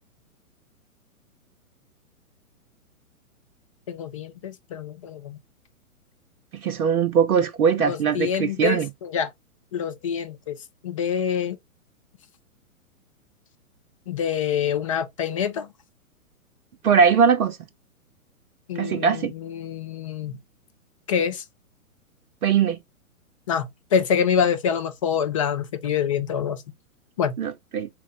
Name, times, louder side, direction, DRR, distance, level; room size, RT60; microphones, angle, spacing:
voice 1, 3.9-5.4 7.9-9.3 9.7-10.6 10.8-11.6 14.1-15.7 18.7-20.4 21.1-21.4 23.5-26.6 27.2-27.3, left 7 dB, 25° left, 0.4 m, -26 dB
voice 2, 6.5-8.9 16.8-17.6 18.8-19.3 22.4-22.8 27.4-27.9, right 7 dB, 75° right, 0.6 m, -21 dB
4.2 x 2.1 x 3.6 m
figure-of-eight pair, 115°, 43 cm